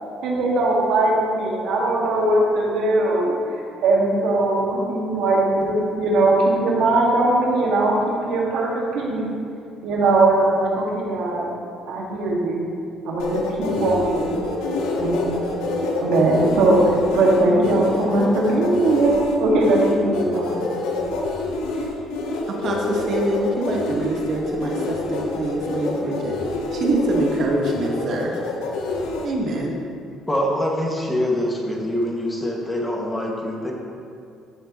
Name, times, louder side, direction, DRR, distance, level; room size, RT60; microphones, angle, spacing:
voice 1, 0.2-3.3 3.8-9.2 9.8-11.5 11.9-12.6 13.0-14.3 15.0-20.7, right 2 dB, 75° right, -3 dB, 1.9 m, -20 dB
sound 1, 13.2-29.3, left 3 dB, 90° left, 1.1 m, -26 dB
voice 2, 22.6-26.4 26.7-28.4 29.2-29.7, right 2 dB, 55° right, 0 dB, 1.6 m, -24 dB
voice 3, 30.3-33.7, left 1 dB, 15° left, -2 dB, 1.9 m, -24 dB
14.0 x 6.6 x 3.1 m, 2.5 s
cardioid pair, 85°, 0 cm